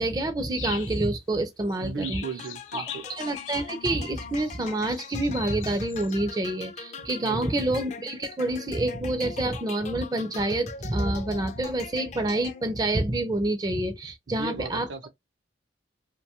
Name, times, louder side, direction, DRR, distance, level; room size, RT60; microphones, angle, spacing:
voice 1, 0.0-2.2 2.7-2.8 3.1-14.9, right 1 dB, 20° right, 0.4 m, -27 dB
sound 1, 0.6-1.1 1.7-1.8 2.0-6.1, left 8 dB, 85° left, 0.6 m, -41 dB
voice 2, 1.8-3.1 7.2-7.4 14.3-15.1, right 4 dB, 70° right, 0.6 m, -36 dB
sound 2, 2.2-12.9, left 5 dB, 35° left, 0.4 m, -42 dB
2.6 x 2.2 x 2.8 m
head